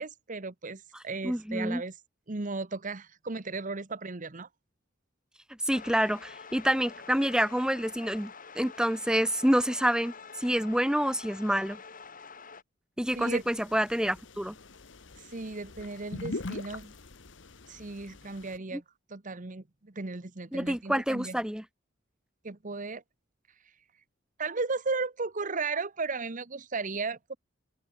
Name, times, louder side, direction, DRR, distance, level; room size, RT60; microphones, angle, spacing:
voice 1, 0.0-1.9 2.3-4.5 13.2-13.4 15.2-16.9 17.7-18.8 19.1-21.4 22.4-23.0 24.4-27.4, right 3 dB, 45° right, 1.2 m, -35 dB
voice 2, 1.2-1.8 5.7-11.8 13.0-14.5 18.7-18.8 20.5-21.6, equal, 5° right, 1.8 m, -27 dB
sound 1, 5.7-12.6, left 5 dB, 45° left, 4.7 m, -47 dB
sound 2, 13.1-18.6, left 2 dB, 70° left, 1.3 m, -43 dB
open air
head